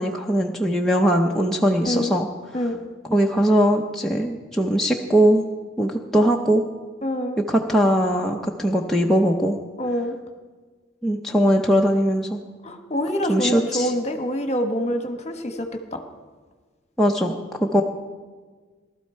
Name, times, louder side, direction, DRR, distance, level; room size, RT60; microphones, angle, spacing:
voice 1, 0.0-2.3 3.1-5.5 5.8-6.6 7.5-9.6 11.0-12.4 13.3-13.9 17.0-17.4 17.6-17.8, equal, ahead, -1 dB, 0.7 m, -20 dB
voice 2, 1.8-2.2 2.5-2.8 7.0-7.4 9.8-10.2 12.6-16.0, equal, 35° left, 6 dB, 1.2 m, -26 dB
19.0 x 12.5 x 4.4 m, 1.4 s
head